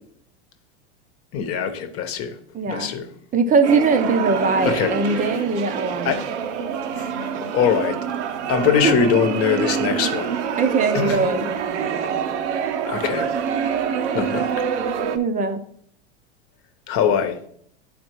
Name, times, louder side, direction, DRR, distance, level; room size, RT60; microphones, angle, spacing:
voice 1, 1.3-2.3 2.7-3.0 4.6-5.2 6.0-6.2 7.0-7.1 7.5-8.0 8.5-10.3 10.9-11.2 12.9-13.3 14.1-14.5 16.9-17.4, left 7 dB, 40° left, 1.0 m, -22 dB
voice 2, 2.5-2.9 3.3-6.1 8.8-9.0 10.6-11.5 15.1-15.6, right 4 dB, 25° right, 0.6 m, -21 dB
sound 1, 3.6-15.2, right 7 dB, 75° right, 0.8 m, -26 dB
11.0 x 4.3 x 3.0 m
hypercardioid pair, 115°, 34 cm